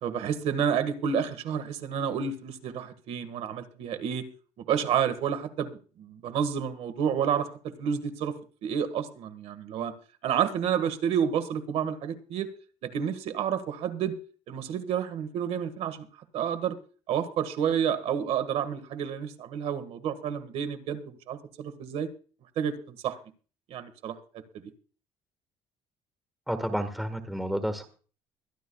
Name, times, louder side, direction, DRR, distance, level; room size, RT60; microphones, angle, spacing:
voice 1, 0.0-4.3 4.7-5.7 6.0-7.5 7.8-8.3 8.6-9.9 10.2-12.5 12.8-14.1 14.5-16.1 16.3-16.8 17.1-22.1 22.6-23.1 23.7-24.2, right 8 dB, 65° right, 11 dB, 1.6 m, -29 dB
voice 2, 26.5-27.9, equal, ahead, 8 dB, 1.5 m, -30 dB
23.0 x 11.5 x 2.3 m, 0.40 s
cardioid pair, 145°, 11 cm